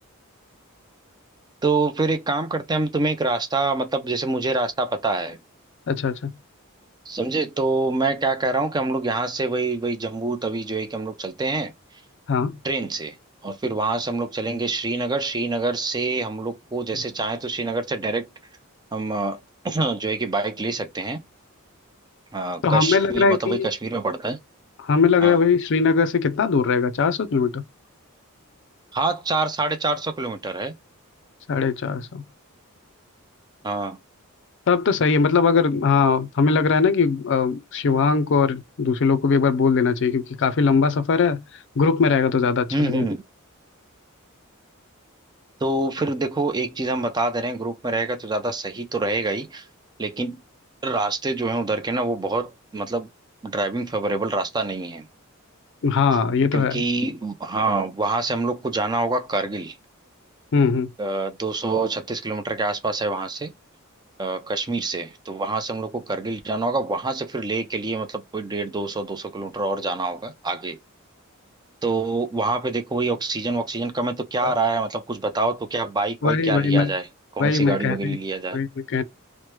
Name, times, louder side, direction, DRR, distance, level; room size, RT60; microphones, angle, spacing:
voice 1, 1.6-5.4 7.1-11.7 12.6-13.2 13.4-18.3 18.9-19.4 19.6-21.2 22.3-24.4 25.2-25.4 28.9-30.8 33.6-34.0 42.7-43.2 45.6-49.7 50.0-50.4 50.8-53.1 53.4-55.1 56.5-59.8 61.0-63.5 64.2-70.8 71.8-77.1 77.3-78.6, right 3 dB, 20° right, 0.4 m, -26 dB
voice 2, 5.9-6.3 12.3-12.6 22.6-23.7 24.8-27.6 31.5-32.2 34.7-41.4 41.8-43.1 55.8-56.8 60.5-60.9 74.4-74.5 76.2-76.9 77.4-78.2 78.5-79.0, left 5 dB, 60° left, 0.5 m, -20 dB
3.0 x 2.1 x 3.1 m
head